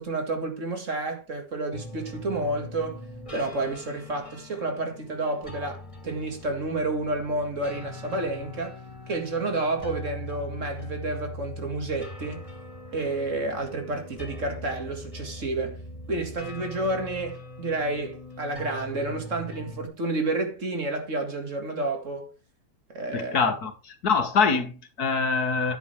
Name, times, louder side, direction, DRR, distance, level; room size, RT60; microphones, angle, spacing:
voice 1, 0.0-3.0 3.3-8.8 9.1-12.4 12.9-15.8 16.1-22.3 22.9-23.5, right 2 dB, 50° right, 2.2 m, -30 dB
sound 1, 1.7-19.9, left 1 dB, 20° left, 2.7 m, -41 dB
voice 2, 23.1-23.7 24.0-25.8, left 5 dB, 75° left, 2.0 m, -24 dB
10.0 x 8.7 x 3.3 m
omnidirectional pair, 1.7 m